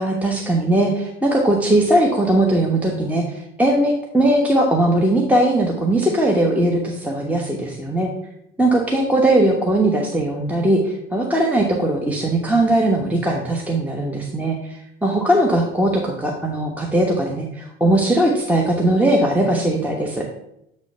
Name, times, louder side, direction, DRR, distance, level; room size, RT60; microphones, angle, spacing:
voice 1, 0.0-8.1 8.6-20.2, right 1 dB, 5° right, 0 dB, 1.1 m, -19 dB
8.2 x 3.2 x 5.5 m, 0.79 s
hypercardioid pair, 70°, 30 cm